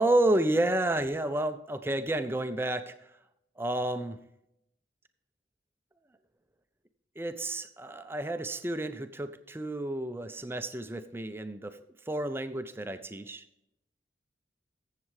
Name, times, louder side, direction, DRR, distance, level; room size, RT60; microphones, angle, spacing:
voice 1, 0.0-2.9 3.6-4.2 7.2-11.8 12.1-13.4, right 1 dB, 10° right, 9 dB, 0.4 m, -30 dB
15.0 x 7.5 x 3.1 m, 0.83 s
head